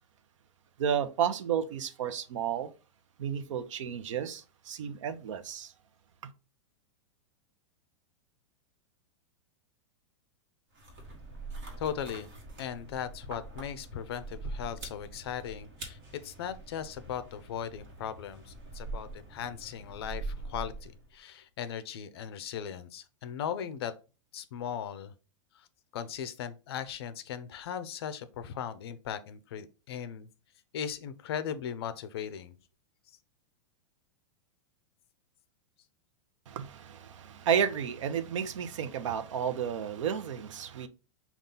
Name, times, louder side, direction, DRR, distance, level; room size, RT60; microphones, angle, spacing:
voice 1, 0.8-2.7 3.2-5.7 6.2-6.3 36.5-40.9, right 8 dB, 75° right, 0.6 m, -32 dB
sound 1, 10.7-21.1, right 3 dB, 40° right, 1.2 m, -43 dB
voice 2, 11.8-12.3 12.6-23.9 24.3-25.1 25.5-25.7 25.9-30.3 30.7-32.6, left 8 dB, 55° left, 0.5 m, -38 dB
5.3 x 2.4 x 3.8 m
supercardioid pair, 180°, 16 cm